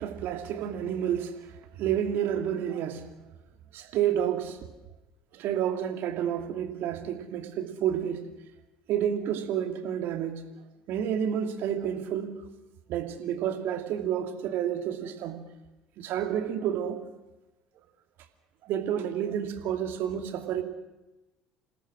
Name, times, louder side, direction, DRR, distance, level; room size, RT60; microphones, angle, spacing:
voice 1, 0.0-3.1 3.7-4.7 5.3-8.2 8.9-10.4 10.9-12.4 12.9-15.4 16.0-17.0 18.6-20.6, right 9 dB, 60° right, 7 dB, 2.7 m, -30 dB
28.0 x 17.5 x 6.3 m, 1.0 s
hypercardioid pair, 60°, 4 cm